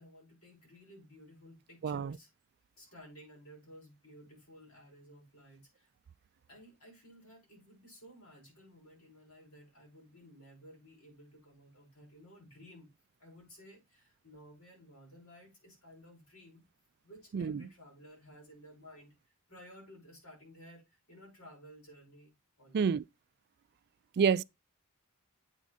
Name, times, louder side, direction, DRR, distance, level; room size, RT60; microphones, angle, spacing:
voice 1, 0.0-2.3 2.8-5.9 6.5-12.9 13.2-16.6 17.0-19.2 19.5-23.0, equal, 75° left, 5.6 m, -55 dB
voice 2, 1.8-2.2 17.3-17.7 22.7-23.0 24.2-24.4, right 6 dB, 45° right, 0.3 m, -28 dB
8.2 x 4.7 x 4.0 m
head